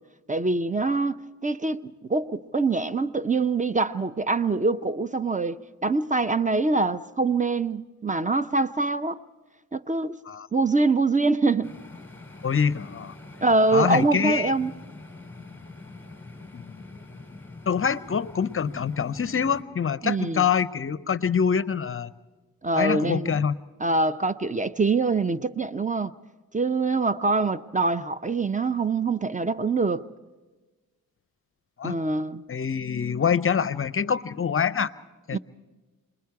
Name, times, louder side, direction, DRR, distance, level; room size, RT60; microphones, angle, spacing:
voice 1, 0.3-9.2 9.7-10.2 10.5-11.7 13.4-14.7 20.0-20.4 22.6-23.5 23.8-26.1 26.5-30.1 31.8-32.4 35.3-35.4, right 3 dB, 20° right, 0.6 m, -24 dB
sound 1, 11.6-19.6, left 3 dB, 5° left, 3.0 m, -44 dB
voice 2, 12.4-13.1 13.7-14.5 16.5-16.8 17.7-22.1 22.8-23.5 31.8-32.0 32.5-34.9 35.3-35.4, left 7 dB, 35° left, 0.6 m, -25 dB
28.0 x 21.5 x 4.7 m
cardioid pair, 60°, 36 cm